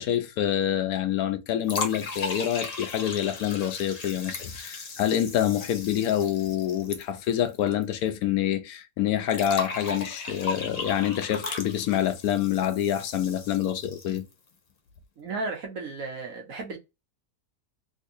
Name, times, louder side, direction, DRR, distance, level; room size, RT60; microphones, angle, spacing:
voice 1, 0.0-14.2, left 11 dB, 75° left, 1.0 m, -27 dB
sound 1, 1.6-8.1 9.3-14.3, left 3 dB, 50° left, 0.4 m, -36 dB
voice 2, 15.2-16.8, right 3 dB, 60° right, 1.3 m, -34 dB
3.5 x 2.7 x 2.6 m
omnidirectional pair, 1.7 m